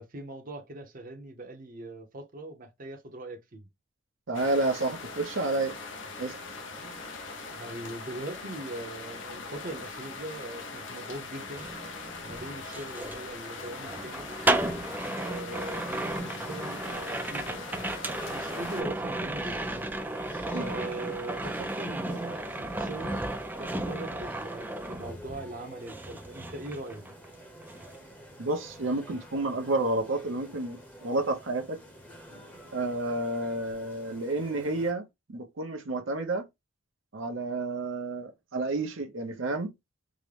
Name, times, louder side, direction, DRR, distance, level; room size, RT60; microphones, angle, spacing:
voice 1, 0.0-3.7 6.8-7.2 7.5-11.7 12.2-14.3 15.1-19.9 20.6-23.2 23.6-27.0, right 2 dB, 45° right, 0.7 m, -41 dB
sound 1, 4.3-18.8, left 3 dB, 70° left, 0.6 m, -41 dB
voice 2, 4.3-5.7 6.2-6.4 20.5-20.7 28.4-31.8 32.7-35.0 35.3-36.4 37.1-39.7, right 2 dB, 85° right, 0.7 m, -30 dB
sound 2, 11.4-25.6 25.9-27.3 27.6-28.0, right 1 dB, 10° right, 0.3 m, -34 dB
sound 3, 15.9-34.9, right 1 dB, 10° left, 0.8 m, -48 dB
3.6 x 2.1 x 3.2 m
head